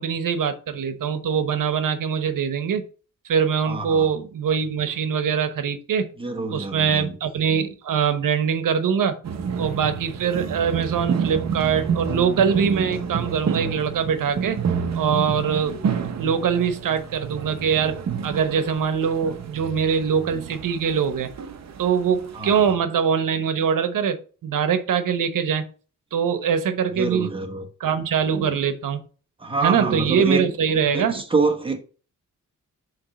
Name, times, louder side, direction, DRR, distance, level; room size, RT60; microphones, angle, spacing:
voice 1, 0.0-2.8 3.3-6.1 6.5-9.2 9.6-14.6 14.9-15.8 16.2-17.9 18.2-21.3 21.8-25.7 26.1-27.4 27.8-29.0 29.6-31.2, right 7 dB, 80° right, 1.0 m, -23 dB
voice 2, 3.6-4.1 6.2-7.1 22.3-22.7 27.0-27.7 28.5-28.6 29.4-30.5 30.9-31.8, right 4 dB, 15° right, 1.1 m, -26 dB
sound 1, 9.2-22.7, right 7 dB, 55° right, 0.7 m, -29 dB
7.1 x 3.3 x 6.2 m
wide cardioid pair, 165°, 32 cm